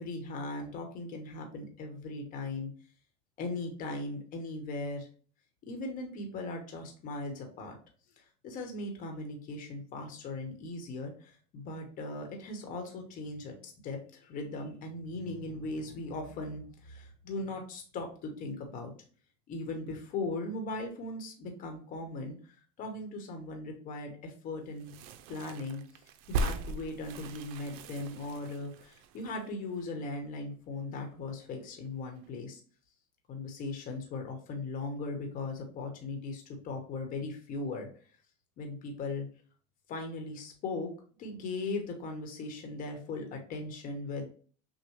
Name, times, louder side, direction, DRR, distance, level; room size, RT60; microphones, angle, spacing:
voice 1, 0.0-2.7 3.4-5.1 5.7-7.7 8.2-18.9 19.5-24.9 25.3-25.8 26.3-32.6 33.3-37.9 38.6-39.3 39.9-40.9 41.2-44.3, left 2 dB, 45° left, 3 dB, 1.1 m, -38 dB
sound 1, 24.7-30.4 30.7-30.8 30.9-31.9 32.2-32.4, right 2 dB, 75° right, 0.5 m, -39 dB
6.4 x 2.2 x 3.1 m, 0.42 s
cardioid pair, 135°, 20 cm